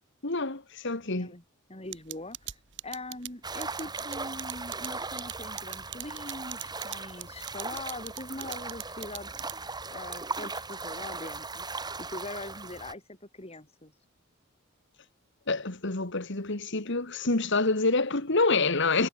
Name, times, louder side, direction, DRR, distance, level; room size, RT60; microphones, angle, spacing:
voice 1, 0.2-1.4 15.5-19.1, left 3 dB, 60° left, 2.3 m, -27 dB
voice 2, 1.7-9.6 9.9-13.9, left 2 dB, 30° left, 5.3 m, -42 dB
sound 1, 1.9-9.8, right 13 dB, 60° right, 3.6 m, -39 dB
sound 2, 3.4-12.9, right 3 dB, 20° right, 5.5 m, -38 dB
head